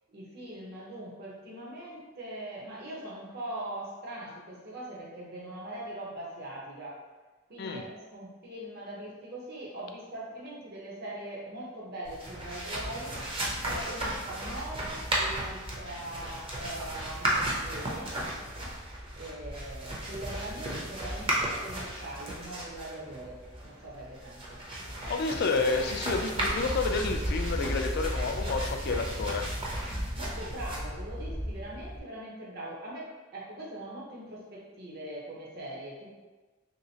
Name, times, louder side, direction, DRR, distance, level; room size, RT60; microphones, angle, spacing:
voice 1, 0.1-7.0 7.5-13.1 13.6-18.1 19.2-24.6 30.1-36.1, right 1 dB, 55° right, -4 dB, 0.9 m, -41 dB
sound 1, 12.0-32.0, right 1 dB, 30° right, 0.6 m, -34 dB
voice 2, 25.1-29.5, left 4 dB, 55° left, 5 dB, 0.3 m, -30 dB
3.1 x 2.9 x 2.8 m, 1.3 s
head